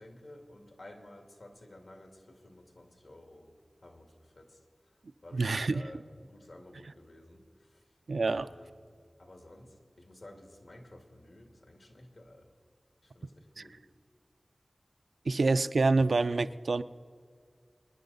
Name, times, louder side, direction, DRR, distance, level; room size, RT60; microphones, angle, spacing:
voice 1, 0.0-3.5 3.8-8.0 8.3-8.9 9.2-12.5 13.0-13.8, left 1 dB, 75° left, 3 dB, 2.1 m, -53 dB
voice 2, 5.3-5.8 8.1-8.5 15.3-16.8, right 3 dB, 85° right, 12 dB, 0.4 m, -27 dB
24.5 x 10.0 x 4.0 m, 2.1 s
wide cardioid pair, 70°, 0 cm